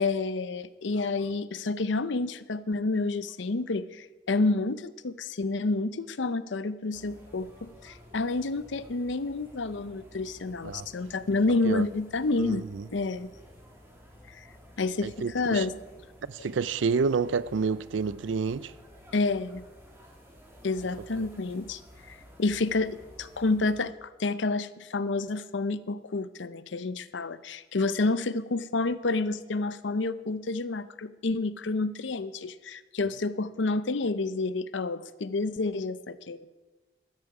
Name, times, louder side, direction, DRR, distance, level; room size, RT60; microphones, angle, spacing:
voice 1, 0.0-12.6 12.9-13.3 14.3-14.5 14.8-15.7 16.4-16.5 19.1-19.6 20.6-21.8 22.1-36.5, left 3 dB, 80° left, 0.6 m, -29 dB
sound 1, 6.9-23.8, equal, 15° right, 2.6 m, -52 dB
voice 2, 12.4-12.8 15.0-15.6 16.3-18.7, right 5 dB, 85° right, 0.5 m, -29 dB
14.0 x 13.0 x 4.9 m
head